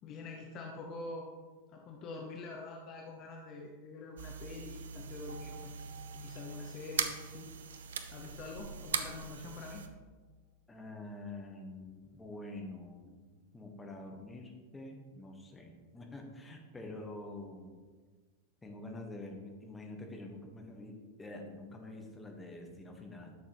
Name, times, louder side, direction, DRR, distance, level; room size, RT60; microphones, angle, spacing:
voice 1, 0.0-1.3 1.7-5.7 6.1-7.5 8.1-9.8, left 3 dB, 35° left, 1 dB, 0.9 m, -45 dB
sound 1, 4.2-9.9, right 6 dB, 65° right, 0.6 m, -40 dB
sound 2, 5.3-9.3, right 7 dB, 85° right, 1.1 m, -59 dB
voice 2, 10.7-13.2 13.5-17.7 18.6-23.4, left 2 dB, 10° left, 1 dB, 1.3 m, -46 dB
11.5 x 6.3 x 3.1 m, 1.4 s
figure-of-eight pair, 90°, 0 cm